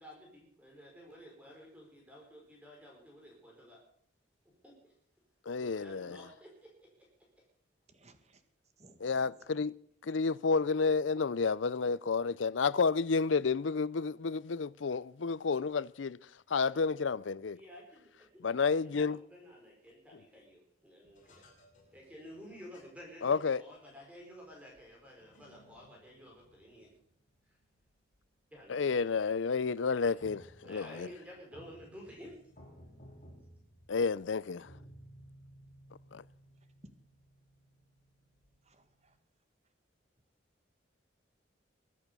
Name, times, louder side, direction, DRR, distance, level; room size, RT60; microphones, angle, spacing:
voice 1, 0.0-3.8 4.6-4.7 5.5-7.1 17.6-18.4 18.9-21.5 21.9-26.9 27.5-27.6 28.5-28.8 30.0-30.1 30.6-32.4, equal, 5° right, 4.8 m, -52 dB
voice 2, 5.5-6.3 9.0-9.7 10.0-17.6 18.4-19.2 20.1-20.2 23.2-23.6 28.7-31.1 33.9-34.7 36.1-36.2, left 4 dB, 90° left, 0.6 m, -31 dB
voice 3, 7.9-8.4 8.8-9.4 36.8-36.9 38.6-39.2, right 1 dB, 35° right, 1.8 m, -59 dB
sound 1, 21.0-23.8 24.5-28.3 28.5-29.0 29.6-39.2, equal, 40° left, 5.5 m, -59 dB
23.0 x 8.6 x 6.8 m
head